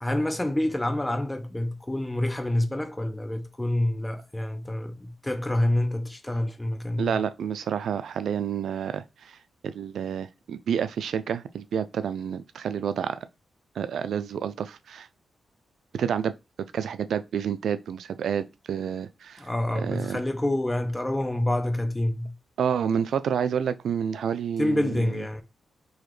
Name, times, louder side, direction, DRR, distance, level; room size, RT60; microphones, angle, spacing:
voice 1, 0.0-7.2 19.4-22.3 24.6-25.4, left 1 dB, 10° left, 0.7 m, -27 dB
voice 2, 7.0-9.4 9.6-13.2 13.8-15.1 15.9-16.3 16.6-19.5 19.8-20.2 22.6-25.1, right 8 dB, 80° right, 0.3 m, -29 dB
3.9 x 2.9 x 3.2 m
cardioid pair, 90°, 0 cm